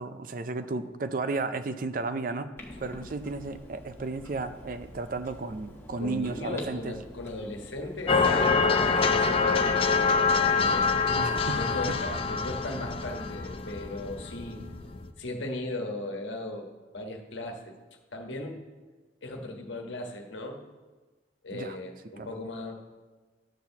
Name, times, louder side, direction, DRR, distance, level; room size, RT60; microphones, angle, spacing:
voice 1, 0.0-2.5 2.8-6.9 11.2-11.6 11.9-12.0 21.5-21.8 22.2-22.3, right 3 dB, 45° right, 11 dB, 0.5 m, -33 dB
Clock, 2.6-9.3, left 1 dB, 10° left, 1.2 m, -47 dB
voice 2, 6.0-10.9 11.5-14.6 15.2-17.7 18.1-18.6 19.2-20.6 21.4-22.7, left 1 dB, 85° left, 3 dB, 1.3 m, -37 dB
sound 1, 8.1-15.1, left 4 dB, 30° left, 0.5 m, -25 dB
11.0 x 4.6 x 6.9 m, 1.3 s
head